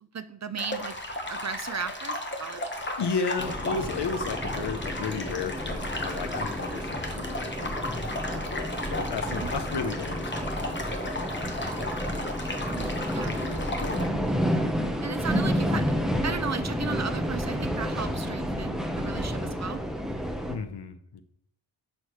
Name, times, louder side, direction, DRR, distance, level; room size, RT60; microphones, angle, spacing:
voice 1, 0.1-0.9 1.3-2.7 9.3-9.5 12.7-13.4 15.0-15.8 16.2-19.8, right 6 dB, 40° right, 12 dB, 0.4 m, -35 dB
sound 1, 0.6-14.1, left 1 dB, 25° left, 1.1 m, -35 dB
voice 2, 3.0-12.0 12.5-12.7 13.3-14.6 20.5-21.2, left 5 dB, 60° left, 9 dB, 0.7 m, -35 dB
sound 2, 3.4-20.6, equal, ahead, 0.8 m, -31 dB
8.0 x 6.4 x 3.1 m, 0.69 s
wide cardioid pair, 95°, 47 cm